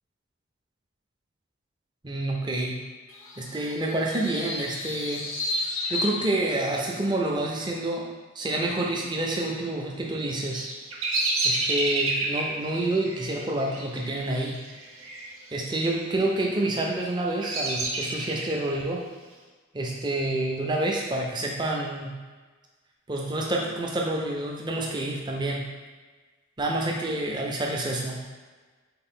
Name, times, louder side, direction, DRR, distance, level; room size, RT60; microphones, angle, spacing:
voice 1, 2.0-2.7 3.4-5.3 5.9-8.0 8.4-10.7 11.4-14.6 15.5-19.0 19.7-22.1 23.1-25.7 26.6-28.2, right 1 dB, 20° right, -1 dB, 0.4 m, -28 dB
sound 1, 3.1-7.1, left 2 dB, 75° left, 0.6 m, -33 dB
Bird vocalization bird call bird song, 10.2-15.3 15.5-16.1 16.7-18.7, right 2 dB, 90° right, 0.7 m, -29 dB
3.7 x 2.4 x 3.7 m, 1.4 s
head